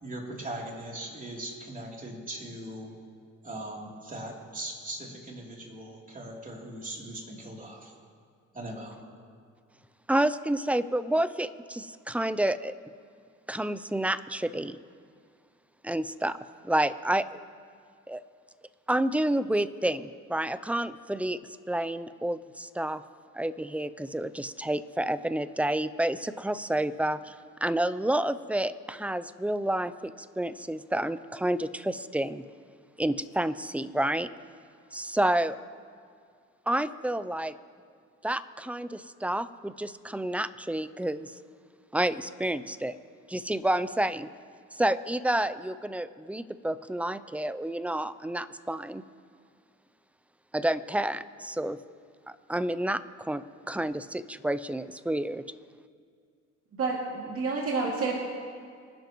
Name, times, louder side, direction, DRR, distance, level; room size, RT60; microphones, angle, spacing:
voice 1, 0.0-2.9 3.4-7.9 8.5-9.0, right 1 dB, 25° right, -2 dB, 3.2 m, -40 dB
voice 2, 10.1-12.7 13.5-14.8 15.8-16.4 16.6-17.4 18.1-18.2 18.9-21.4 21.7-23.0 23.3-27.3 27.6-32.4 33.0-34.3 34.9-35.6 36.7-37.6 38.2-41.3 41.9-43.0 43.3-44.3 44.7-49.0 50.5-51.8 52.5-55.4, right 1 dB, 5° right, 15 dB, 0.4 m, -29 dB
voice 3, 56.8-58.1, right 4 dB, 50° right, -3 dB, 2.4 m, -29 dB
25.5 x 10.5 x 3.1 m, 2.2 s
cardioid pair, 90°, 30 cm